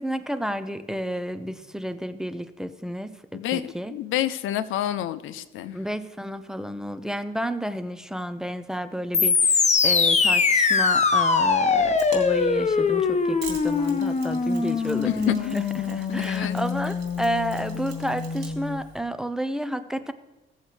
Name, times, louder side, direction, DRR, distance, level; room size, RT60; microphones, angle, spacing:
voice 1, 0.0-3.9 5.7-20.1, equal, 5° right, 10 dB, 0.6 m, -31 dB
voice 2, 3.3-5.8 15.0-15.6 16.1-16.6, left 12 dB, 85° left, 14 dB, 0.6 m, -28 dB
sound 1, 9.1-18.8, left 5 dB, 35° left, 0.9 m, -23 dB
Mechanisms, 11.8-19.0, right 5 dB, 60° right, 3.0 m, -45 dB
16.0 x 7.3 x 3.3 m, 1.0 s
cardioid pair, 90°, 20 cm